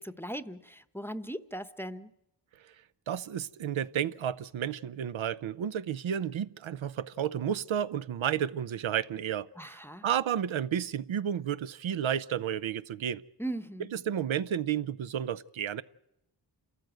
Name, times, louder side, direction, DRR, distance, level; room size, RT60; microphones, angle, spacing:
voice 1, 0.0-2.1 9.6-10.0 13.4-13.9, right 1 dB, 5° left, 0.8 m, -38 dB
voice 2, 3.1-13.2 13.9-15.8, right 9 dB, 85° right, 0.7 m, -32 dB
28.0 x 14.0 x 7.9 m
wide cardioid pair, 70°, 46 cm